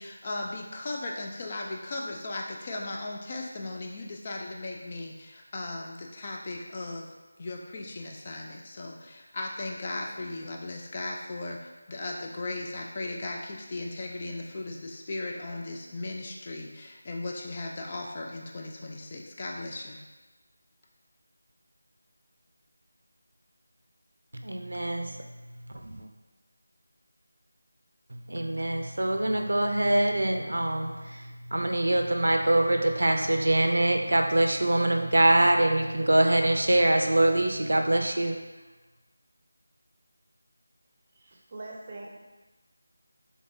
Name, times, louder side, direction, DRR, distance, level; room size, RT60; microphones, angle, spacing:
voice 1, 0.0-7.1 7.4-20.0, left 2 dB, 30° left, 0 dB, 0.4 m, -37 dB
voice 2, 24.3-26.1 28.1-38.4, right 1 dB, 80° right, 4 dB, 0.5 m, -24 dB
voice 3, 41.2-42.1, right 2 dB, 35° right, -1 dB, 0.6 m, -42 dB
3.8 x 3.5 x 2.6 m, 1.2 s
figure-of-eight pair, 170°, 0 cm